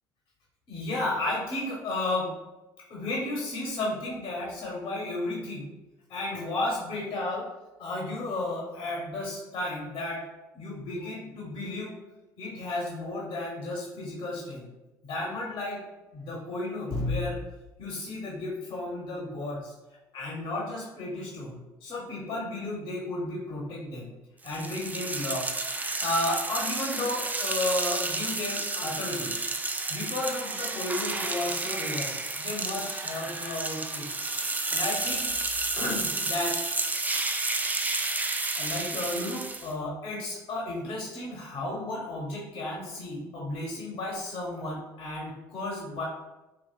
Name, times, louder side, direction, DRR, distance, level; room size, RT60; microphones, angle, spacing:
voice 1, 0.7-2.3 2.9-5.7 6.1-7.5 7.8-10.2 10.5-11.9 12.4-14.7 15.0-15.8 16.1-17.4 17.8-19.7 20.1-24.1 24.4-25.5 26.0-29.3 29.9-34.1 34.7-35.3 35.8-36.6 38.5-46.0, left 2 dB, 50° left, -2 dB, 1.0 m, -33 dB
sound 1, 24.5-39.7, right 3 dB, 15° right, 0.4 m, -31 dB
4.4 x 2.5 x 2.4 m, 1.0 s
hypercardioid pair, 65°, 10 cm